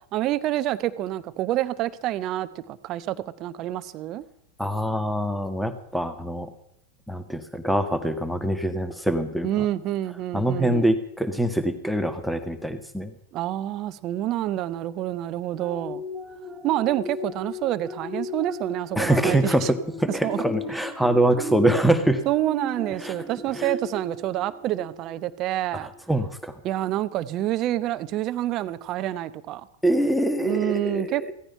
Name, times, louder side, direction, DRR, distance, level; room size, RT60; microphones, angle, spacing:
voice 1, 0.1-4.2 9.4-10.9 13.3-16.0 16.6-19.7 20.1-20.4 22.3-25.9 26.6-29.7 30.4-31.3, right 14 dB, 35° right, 0.9 m, -27 dB
voice 2, 4.6-6.5 7.1-9.7 10.3-13.1 19.0-22.2 23.0-23.1 23.5-23.7 26.1-26.5 29.8-31.3, right 1 dB, ahead, 1.7 m, -24 dB
sound 1, 15.6-25.4 25.9-26.1, left 2 dB, 15° right, 2.9 m, -36 dB
17.0 x 14.0 x 5.8 m
figure-of-eight pair, 90°, 0 cm